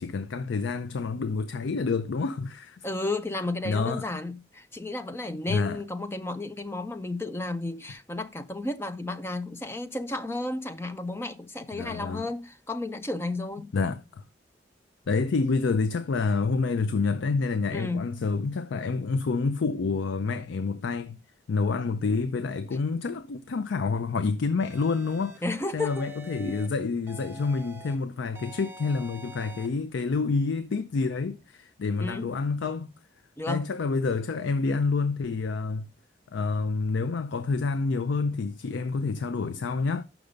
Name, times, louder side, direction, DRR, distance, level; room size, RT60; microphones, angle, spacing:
voice 1, 0.0-2.9 3.6-4.1 5.5-5.8 11.7-12.3 13.6-14.2 15.1-21.2 21.5-25.4 25.7-32.9 33.5-35.9 36.3-40.0, left 4 dB, 85° left, 0.4 m, -28 dB
voice 2, 2.8-13.7 17.7-18.1 25.4-26.1 26.4-26.6 32.0-32.3 33.4-33.7, left 2 dB, 15° left, 0.4 m, -33 dB
sound 1, 24.6-25.4 25.8-26.7 27.1-27.9 28.3-29.7, equal, 15° right, 0.9 m, -46 dB
6.6 x 6.0 x 5.1 m
head